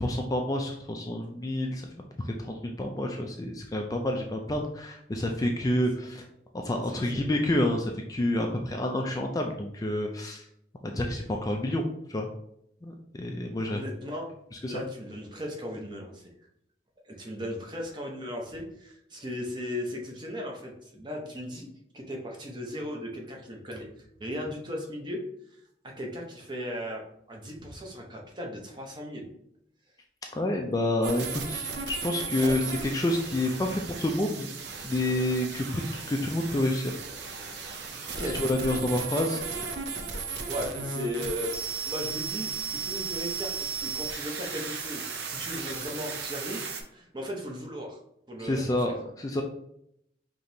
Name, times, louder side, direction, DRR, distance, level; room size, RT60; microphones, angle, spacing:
voice 1, 0.0-1.9 2.2-6.3 6.5-10.4 10.8-11.8 12.1-12.3 12.8-13.8 14.6-14.8 30.3-34.5 34.8-37.0 37.5-37.8 38.3-39.4 48.4-49.4, left 1 dB, 20° left, 2 dB, 0.3 m, -29 dB
voice 2, 7.0-7.4 13.7-14.3 14.6-16.2 17.0-21.7 21.9-23.9 24.2-25.2 25.5-27.0 27.3-29.3 32.4-32.5 38.1-38.4 40.4-41.5 41.8-48.0 48.3-48.9, equal, 25° right, 0 dB, 0.7 m, -37 dB
sound 1, 31.0-46.8, right 5 dB, 75° right, 0.6 m, -35 dB
5.0 x 2.9 x 2.7 m, 0.75 s
head